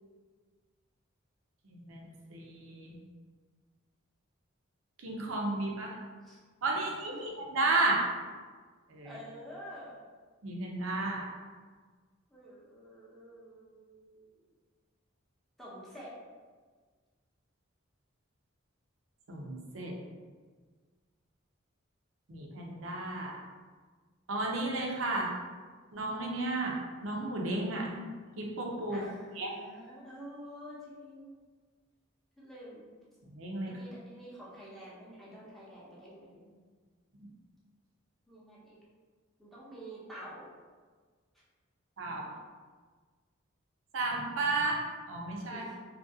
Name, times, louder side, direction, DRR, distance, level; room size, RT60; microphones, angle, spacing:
voice 1, 1.7-3.0 5.0-6.0 6.6-8.1 8.9-9.2 10.4-11.3 19.3-19.9 22.3-23.4 24.3-25.3 25.9-27.9 28.4-29.0 29.4-29.5 33.3-33.8 37.2-37.3 42.0-42.3 43.9-45.6, right 2 dB, 80° right, -1 dB, 0.6 m, -33 dB
voice 2, 9.0-10.0 12.3-14.4 15.6-16.1 28.9-31.3 32.4-32.8 33.7-36.6 38.3-38.8 39.4-40.5 42.1-42.4 45.5-45.8, equal, ahead, -8 dB, 0.6 m, -48 dB
2.8 x 2.4 x 2.6 m, 1.5 s
head